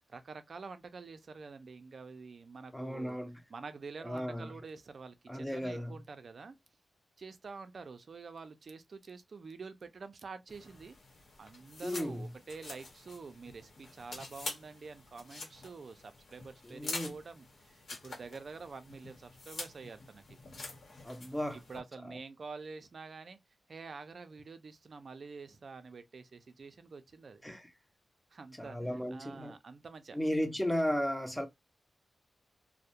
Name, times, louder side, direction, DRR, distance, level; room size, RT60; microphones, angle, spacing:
voice 1, 0.1-3.2 3.5-6.6 7.2-11.0 11.4-20.4 21.7-23.4 23.7-27.4 28.3-28.8 29.1-30.2, right 4 dB, 55° right, 0.4 m, -47 dB
voice 2, 2.7-3.4 4.0-4.5 5.3-5.9 11.8-12.3 16.6-17.2 21.0-21.6 27.4-27.7 28.6-29.5 30.1-31.5, equal, 5° left, 0.6 m, -35 dB
sound 1, 10.5-21.8, left 3 dB, 70° left, 0.9 m, -47 dB
2.3 x 2.1 x 2.7 m
cardioid pair, 85°, 0 cm